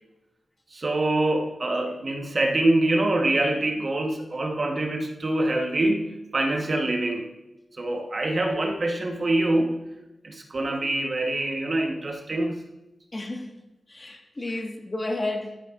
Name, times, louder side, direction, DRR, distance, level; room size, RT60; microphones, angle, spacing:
voice 1, 0.7-7.3 7.8-9.9 10.2-12.6 14.5-14.6, right 2 dB, 45° right, 2 dB, 1.1 m, -25 dB
voice 2, 13.1-13.5 13.9-15.6, left 2 dB, 25° left, 2 dB, 1.6 m, -31 dB
12.5 x 11.5 x 2.5 m, 0.95 s
wide cardioid pair, 125°, 0 cm